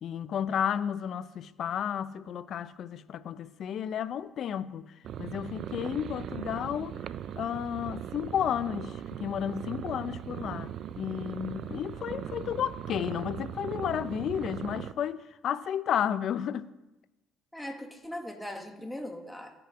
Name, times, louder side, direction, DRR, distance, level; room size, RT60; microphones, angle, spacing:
voice 1, 0.0-4.9 5.2-7.0 7.4-16.7, left 9 dB, 55° left, 0.5 m, -32 dB
sound 1, 5.0-14.9, right 10 dB, 55° right, 0.4 m, -39 dB
voice 2, 17.5-19.5, left 1 dB, 5° left, 1.4 m, -39 dB
16.0 x 5.9 x 5.0 m
cardioid pair, 105°, 0 cm